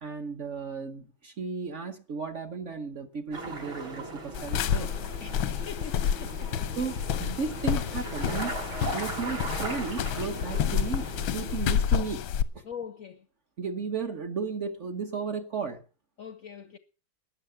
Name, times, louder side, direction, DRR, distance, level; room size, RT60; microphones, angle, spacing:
voice 1, 0.0-4.9 6.8-8.6 8.9-12.6 13.6-15.8, right 5 dB, 45° right, 1.0 m, -34 dB
sound 1, 3.3-11.6, right 2 dB, 85° right, 5.8 m, -39 dB
sound 2, 4.3-12.4, left 9 dB, 90° left, 1.7 m, -29 dB
voice 2, 5.2-6.5 12.6-13.2 16.2-16.8, left 7 dB, 60° left, 0.9 m, -42 dB
13.5 x 9.2 x 7.0 m
omnidirectional pair, 2.2 m